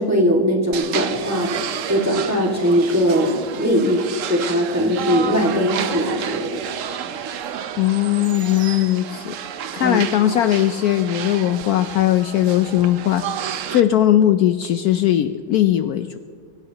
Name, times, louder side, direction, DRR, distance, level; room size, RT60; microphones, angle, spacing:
voice 1, 0.0-3.3 3.6-4.0 4.3-6.6 9.8-10.0, equal, 10° right, -1 dB, 1.9 m, -20 dB
sound 1, 0.7-13.8, right 8 dB, 75° right, 0.7 m, -30 dB
voice 2, 7.8-9.3 9.7-16.2, left 12 dB, 80° left, 10 dB, 0.8 m, -19 dB
24.5 x 16.5 x 2.9 m, 2.1 s
omnidirectional pair, 2.2 m